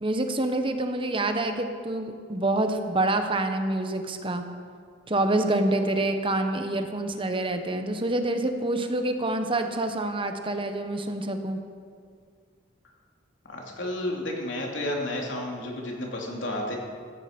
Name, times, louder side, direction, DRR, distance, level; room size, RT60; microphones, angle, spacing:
voice 1, 0.0-4.5 5.1-11.6, right 2 dB, 30° right, 6 dB, 1.0 m, -27 dB
voice 2, 13.4-16.8, left 1 dB, 80° left, -1 dB, 3.0 m, -31 dB
15.5 x 14.5 x 5.2 m, 2.1 s
head